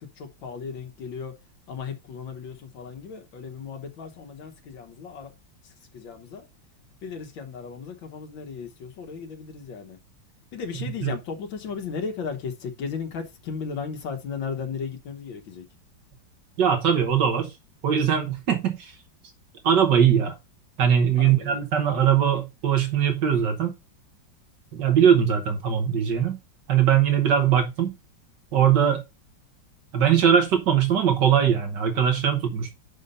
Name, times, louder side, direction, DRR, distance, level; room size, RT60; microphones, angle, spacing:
voice 1, 0.2-1.3 1.7-5.3 5.6-6.5 7.0-10.0 10.5-15.7 21.1-21.6, left 5 dB, 85° left, 1.9 m, -35 dB
voice 2, 16.6-17.5 17.8-19.0 19.6-20.4 20.8-23.7 24.7-26.4 26.7-27.9 28.5-29.0 29.9-32.8, right 8 dB, 70° right, 1.7 m, -21 dB
5.5 x 5.0 x 5.3 m
omnidirectional pair, 2.0 m